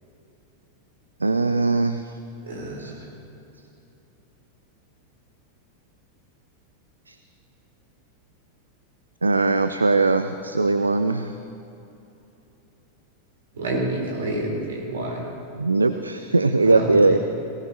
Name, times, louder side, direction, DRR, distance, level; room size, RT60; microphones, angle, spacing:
voice 1, 1.2-2.0 2.8-2.9 7.1-7.2 9.2-11.3 15.6-17.2, right 3 dB, 80° right, 10 dB, 0.4 m, -20 dB
voice 2, 2.5-2.9 13.6-15.2 16.7-16.8 17.1-17.2, right 2 dB, 65° right, -2 dB, 3.9 m, -28 dB
18.5 x 18.0 x 2.9 m, 2.9 s
figure-of-eight pair, 90°, 0 cm